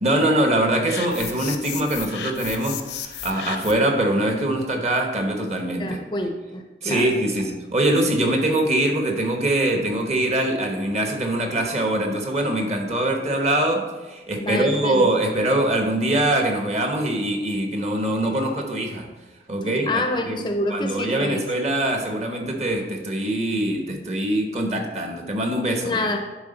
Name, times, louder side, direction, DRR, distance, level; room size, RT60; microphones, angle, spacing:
voice 1, 0.0-6.0 6.8-19.1 19.5-20.4 20.7-26.0, right 1 dB, 40° right, 3 dB, 0.9 m, -23 dB
sound 1, 0.9-3.9, left 8 dB, 80° left, 0.6 m, -34 dB
voice 2, 5.8-7.1 14.4-15.1 19.9-21.4 25.8-26.2, left 1 dB, 25° left, 5 dB, 0.4 m, -27 dB
10.5 x 3.6 x 3.9 m, 1.2 s
head